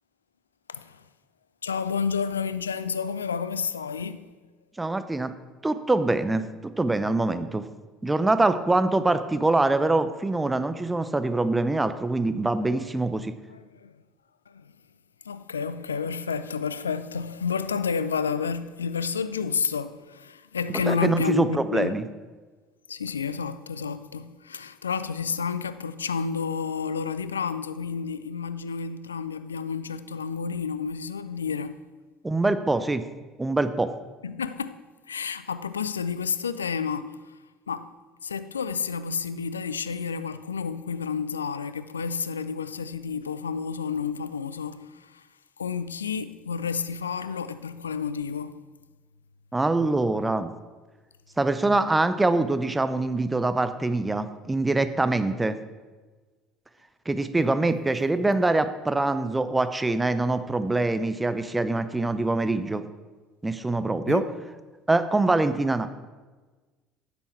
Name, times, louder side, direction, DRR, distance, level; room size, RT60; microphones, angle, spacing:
voice 1, 0.7-1.0 1.6-4.3 13.5-13.9 14.5-14.7 15.2-21.9 22.9-31.8 34.2-34.8 35.1-37.3 37.7-37.9 38.2-45.3 45.6-48.6 64.1-64.2, left 6 dB, 85° left, 0.3 m, -30 dB
voice 2, 4.8-5.3 5.6-7.7 8.0-13.3 20.9-22.0 32.2-33.0 33.4-33.9 49.5-50.5 51.4-55.6 57.1-62.8 63.4-64.2 64.9-65.9, right 2 dB, 15° right, 0.7 m, -24 dB
10.0 x 7.1 x 4.6 m
figure-of-eight pair, 60°, 0 cm